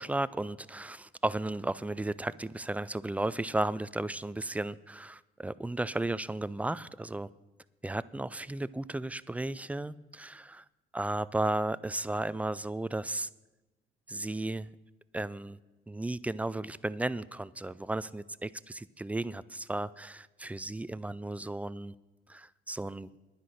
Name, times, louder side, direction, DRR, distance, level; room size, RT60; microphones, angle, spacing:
voice 1, 0.0-7.3 7.8-10.6 10.9-13.3 14.1-14.7 15.1-15.6 15.9-21.9 22.3-23.1, right 2 dB, 5° right, 18 dB, 0.4 m, -34 dB
10.5 x 9.8 x 6.5 m, 1.1 s
cardioid pair, 90°, 20 cm